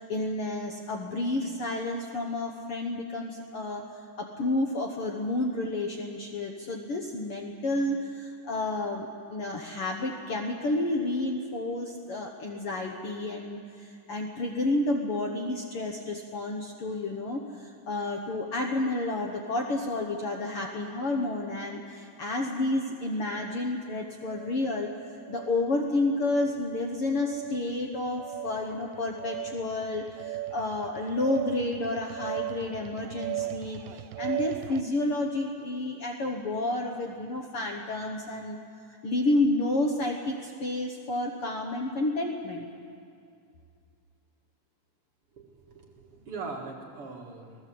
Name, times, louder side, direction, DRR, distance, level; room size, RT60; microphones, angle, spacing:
voice 1, 0.0-3.9 4.2-24.9 25.3-38.6 39.0-42.6, left 2 dB, 55° left, 1 dB, 1.8 m, -30 dB
sound 1, 23.3-23.6 24.3-24.6 25.2-25.6 26.2-26.7 27.2-27.7 28.2-34.8, right 15 dB, 90° right, 2.5 m, -37 dB
voice 2, 45.3-47.6, right 4 dB, 45° right, -1 dB, 2.8 m, -41 dB
27.0 x 18.5 x 7.8 m, 2.4 s
omnidirectional pair, 3.9 m